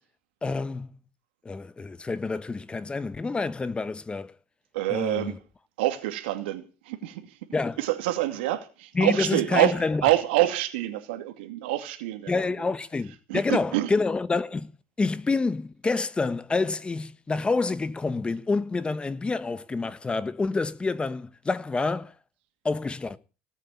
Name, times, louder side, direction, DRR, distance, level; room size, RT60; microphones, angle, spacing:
voice 1, 0.4-0.9 1.4-4.3 4.9-5.4 7.5-7.8 8.9-10.0 12.3-14.7 15.0-22.1 22.6-23.2, left 3 dB, 20° left, 1.3 m, -28 dB
voice 2, 4.7-5.4 5.8-7.3 7.8-12.3 13.3-13.9, right 15 dB, 90° right, 2.5 m, -26 dB
18.5 x 8.2 x 8.6 m
supercardioid pair, 100°, 6 cm